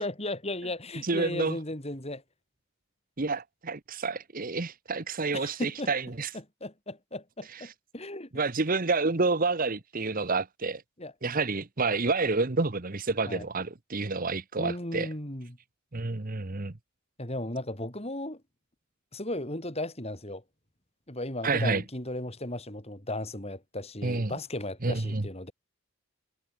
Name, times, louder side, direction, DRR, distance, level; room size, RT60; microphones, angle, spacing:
voice 1, 0.0-2.2 5.3-5.9 6.3-8.3 11.0-11.1 13.3-13.4 14.6-15.6 17.2-18.4 19.1-20.4 21.1-25.5, left 1 dB, 25° left, 4.2 m, -36 dB
voice 2, 1.0-1.6 3.2-6.3 8.3-10.8 11.2-15.1 15.9-16.7 21.4-21.8 24.0-24.3 24.8-25.2, right 3 dB, 40° right, 1.0 m, -29 dB
head